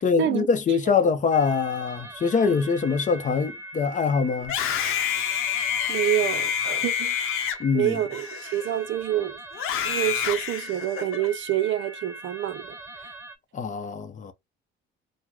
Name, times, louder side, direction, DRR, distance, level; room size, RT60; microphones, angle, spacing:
voice 1, 0.0-4.5 7.6-8.0 13.5-14.3, left 5 dB, 35° left, 0.6 m, -24 dB
sound 1, 1.3-13.4, right 1 dB, 10° right, 0.5 m, -41 dB
Screaming, 4.4-8.9 9.5-11.3, left 9 dB, 85° left, 0.7 m, -28 dB
voice 2, 5.9-7.1 7.7-9.4 9.8-12.7, right 12 dB, 65° right, 0.5 m, -27 dB
3.0 x 2.1 x 3.5 m
cardioid pair, 110°, 21 cm